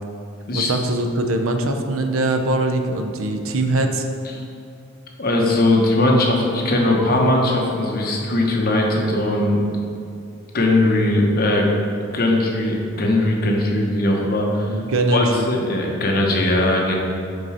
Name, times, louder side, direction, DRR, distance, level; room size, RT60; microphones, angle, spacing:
voice 1, 0.5-4.1 14.7-15.5, right 2 dB, 85° right, 5 dB, 0.6 m, -22 dB
voice 2, 5.2-9.6 10.5-11.7 12.1-14.8 15.1-16.9, left 1 dB, 50° left, -1 dB, 1.0 m, -19 dB
5.2 x 4.7 x 5.6 m, 2.5 s
head